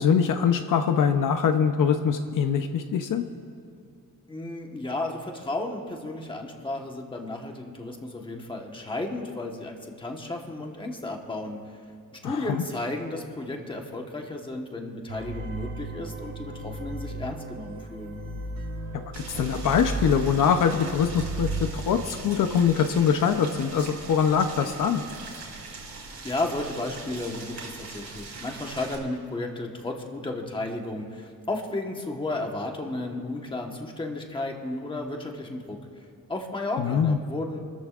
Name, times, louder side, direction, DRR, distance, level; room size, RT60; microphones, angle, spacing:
voice 1, 0.0-3.2 12.2-12.6 19.3-25.0 36.8-37.2, left 7 dB, 65° left, 7 dB, 0.7 m, -23 dB
voice 2, 4.3-11.6 12.2-18.2 26.2-35.8 36.3-37.6, left 2 dB, 15° left, 2 dB, 1.2 m, -33 dB
sound 1, 15.1-21.6, right 3 dB, 85° right, 2.7 m, -34 dB
Boiling, 19.1-29.0, right 3 dB, 55° right, 2.9 m, -41 dB
28.5 x 14.0 x 2.5 m, 2.4 s
wide cardioid pair, 165°, 34 cm